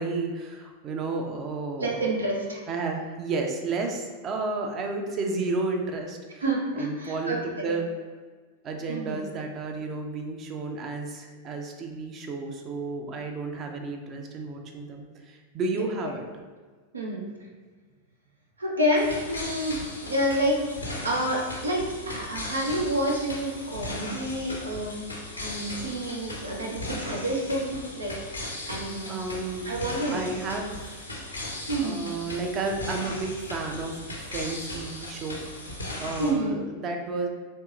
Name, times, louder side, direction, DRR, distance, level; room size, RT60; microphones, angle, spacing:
voice 1, 0.0-2.0 2.7-6.4 6.8-8.0 8.6-16.2 29.1-29.7 30.1-31.0 31.8-35.4 36.0-37.3, right 3 dB, 30° right, 3 dB, 0.6 m, -32 dB
voice 2, 1.8-2.6 6.4-7.7 8.9-9.2 15.7-15.8 16.9-17.3 18.6-20.6 21.0-25.0 25.4-28.1 28.7-29.1 29.6-30.2 31.7-32.0 36.2-36.6, right 1 dB, 75° right, -1 dB, 0.6 m, -28 dB
sound 1, 18.9-36.3, left 1 dB, 80° left, 0.7 m, -37 dB
4.5 x 3.1 x 2.5 m, 1.4 s
figure-of-eight pair, 90°, 0 cm